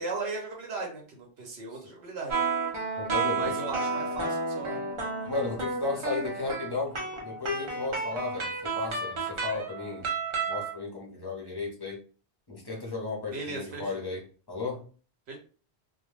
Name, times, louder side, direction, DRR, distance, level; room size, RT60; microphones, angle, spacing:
voice 1, 0.0-2.4 3.4-4.8 13.3-13.9 15.3-15.4, right 3 dB, 75° right, 0 dB, 1.0 m, -36 dB
sound 1, 2.3-10.7, right 4 dB, 40° right, 0.5 m, -31 dB
voice 2, 2.9-3.6 5.3-10.1 10.5-12.0 12.5-14.8, left 3 dB, 25° left, -3 dB, 0.6 m, -34 dB
2.2 x 2.2 x 3.1 m, 0.39 s
omnidirectional pair, 1.1 m